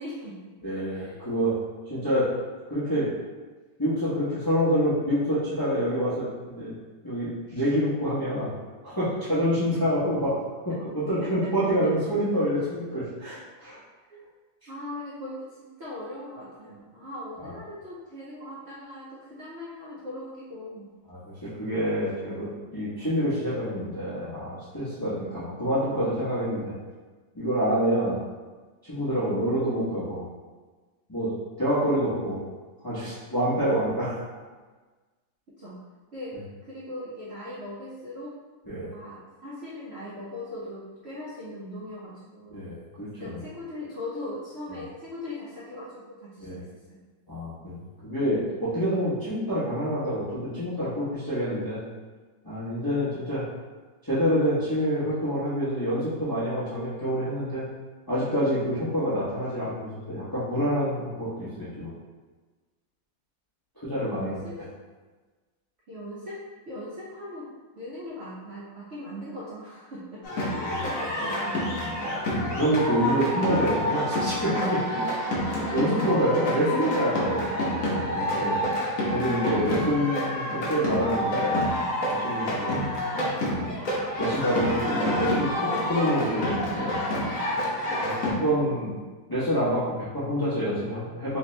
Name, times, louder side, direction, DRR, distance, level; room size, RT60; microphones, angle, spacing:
voice 1, 0.0-0.5 0.8-1.2 11.2-11.9 12.7-12.8 14.1-14.2 14.7-20.9 35.6-35.7 36.1-38.4 38.9-42.7 43.2-47.0 64.0-64.6 65.9-71.6, left 1 dB, 65° right, -8 dB, 0.6 m, -39 dB
voice 2, 0.6-1.5 1.9-2.3 2.7-3.1 3.8-6.7 7.0-8.5 8.8-10.4 10.6-13.8 17.4-17.6 21.1-26.7 27.3-28.2 28.9-30.3 31.1-31.3 31.6-32.4 32.8-34.4 38.7-38.9 42.5-43.4 46.4-46.6 47.3-47.8 48.0-51.8 52.4-53.5 54.0-57.7 58.1-61.9 63.8-64.4 70.7-70.8 72.3-78.6 79.1-81.7 82.1-82.7 83.5-83.8 84.2-87.0 88.0-89.0 89.3-91.4, equal, 20° left, -11 dB, 0.6 m, -27 dB
sound 1, 70.2-88.3, left 1 dB, 55° left, 1.0 m, -28 dB
3.3 x 2.9 x 3.2 m, 1.3 s
omnidirectional pair, 2.0 m